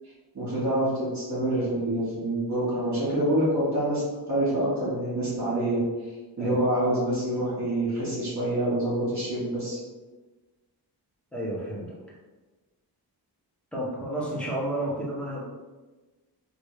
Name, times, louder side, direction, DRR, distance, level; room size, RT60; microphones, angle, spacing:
voice 1, 0.3-5.8 6.4-9.8, right 1 dB, 45° right, -11 dB, 1.4 m, -26 dB
voice 2, 11.3-12.0 13.7-15.4, right 1 dB, 5° left, -5 dB, 0.9 m, -31 dB
3.2 x 2.6 x 3.1 m, 1.2 s
wide cardioid pair, 120°, 41 cm